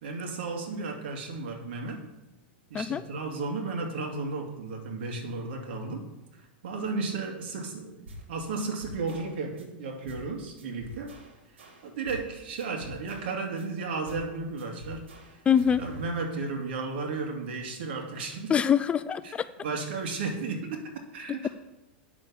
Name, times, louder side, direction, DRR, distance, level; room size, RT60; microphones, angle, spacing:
voice 1, 0.0-2.0 2.7-6.0 6.6-11.1 11.8-15.1 15.8-18.6 19.2-19.3 19.6-20.8 21.1-21.5, right 3 dB, 65° right, 2 dB, 2.5 m, -34 dB
sound 1, 8.1-8.3 8.6-9.7 10.1-10.3 10.6-12.3 12.6-13.7 14.1-14.3 14.6-16.1, equal, 85° right, 2.4 m, -46 dB
voice 2, 15.5-15.8 18.5-19.4, left 8 dB, 20° left, 13 dB, 0.4 m, -24 dB
8.7 x 6.5 x 7.0 m, 0.97 s
hypercardioid pair, 130°, 6 cm